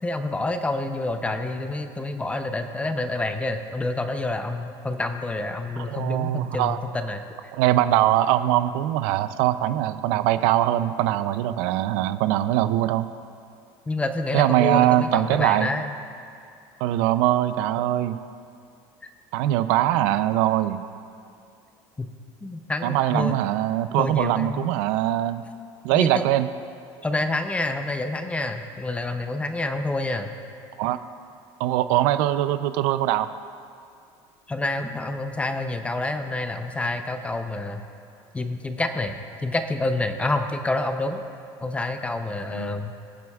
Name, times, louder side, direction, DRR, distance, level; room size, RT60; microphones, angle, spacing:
voice 1, 0.0-7.2 13.9-15.9 19.0-19.1 22.0-22.1 22.4-23.3 24.0-24.7 25.9-26.2 27.0-30.3 34.5-37.8 38.3-41.2 41.6-42.9, left 2 dB, 10° left, 7 dB, 0.6 m, -28 dB
voice 2, 5.8-6.8 7.5-13.1 14.3-15.7 16.8-18.2 19.3-20.8 22.8-25.4 25.8-26.5 30.8-31.0 31.6-33.3 42.5-42.8, right 13 dB, 80° right, 12 dB, 0.5 m, -22 dB
23.0 x 7.7 x 2.4 m, 2.4 s
cardioid pair, 135°, 11 cm